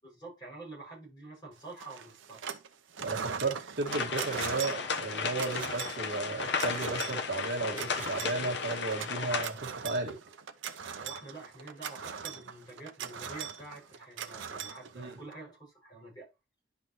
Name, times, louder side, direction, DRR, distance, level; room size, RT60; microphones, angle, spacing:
voice 1, 0.0-2.6 10.9-16.3, right 2 dB, 20° left, 6.4 m, -47 dB
sound 1, 1.8-2.7 2.9-15.3, right 7 dB, 75° right, 0.7 m, -40 dB
voice 2, 3.0-10.2 14.9-15.1, right 3 dB, 60° right, 2.0 m, -34 dB
sound 2, 3.9-9.5, left 5 dB, 60° left, 1.1 m, -34 dB
10.5 x 5.9 x 3.0 m
head